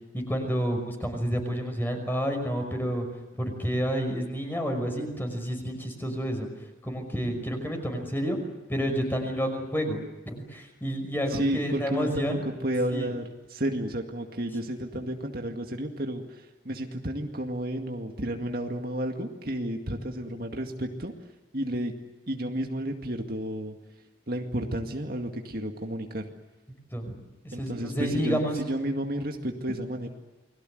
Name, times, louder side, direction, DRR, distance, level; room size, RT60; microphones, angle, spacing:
voice 1, 0.1-3.1 3.4-6.5 6.8-8.4 8.7-12.4 12.9-13.1 26.9-27.1 27.4-28.6, equal, 10° left, 4 dB, 5.5 m, -29 dB
voice 2, 11.3-21.1 21.5-21.9 22.3-23.8 24.3-26.3 27.5-30.1, right 1 dB, 50° right, 3 dB, 2.1 m, -31 dB
29.5 x 22.0 x 7.9 m, 1.1 s
head